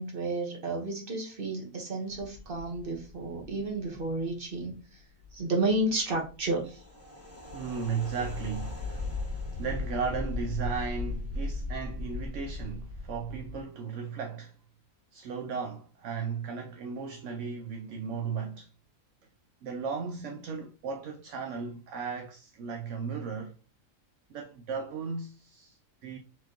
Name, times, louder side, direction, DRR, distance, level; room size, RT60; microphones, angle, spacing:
voice 1, 0.0-4.8 5.3-6.8, right 2 dB, 40° right, 1.4 m, -31 dB
sound 1, 2.1-4.7 5.0-5.4 5.7-13.6, left 2 dB, 10° left, 1.0 m, -37 dB
voice 2, 7.5-9.1 9.6-14.6 15.1-18.7 19.6-23.6 24.3-26.2, right 5 dB, 65° right, 0.9 m, -36 dB
4.6 x 3.9 x 2.9 m
omnidirectional pair, 1.4 m